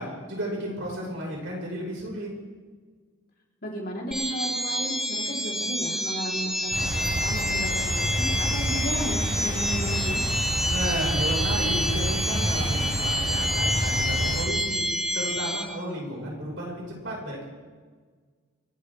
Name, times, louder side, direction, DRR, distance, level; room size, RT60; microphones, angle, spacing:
voice 1, 0.0-2.3 10.7-14.8 15.1-17.4, equal, 65° right, -2 dB, 5.6 m, -33 dB
voice 2, 3.6-10.2, equal, 45° left, -3 dB, 4.1 m, -34 dB
sound 1, 4.1-15.6, equal, ahead, 1.5 m, -28 dB
sound 2, 6.7-14.4, right 1 dB, 25° right, 5.4 m, -29 dB
29.5 x 11.0 x 3.7 m, 1.5 s
head